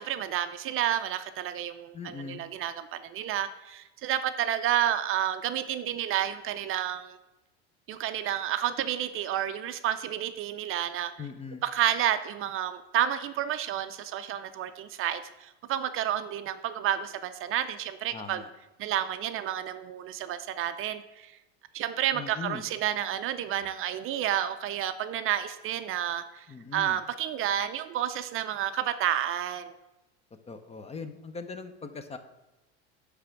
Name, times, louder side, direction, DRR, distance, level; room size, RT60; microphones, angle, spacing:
voice 1, 0.0-7.2 7.9-11.1 11.6-18.4 18.8-21.3 21.7-26.5 26.7-29.7, right 11 dB, 40° right, 10 dB, 0.5 m, -30 dB
voice 2, 1.9-2.4 11.2-11.6 18.1-18.5 22.1-22.6 26.5-27.0 30.5-32.2, left 5 dB, 20° left, 9 dB, 0.6 m, -40 dB
9.6 x 3.5 x 5.8 m, 0.99 s
supercardioid pair, 100°, 33 cm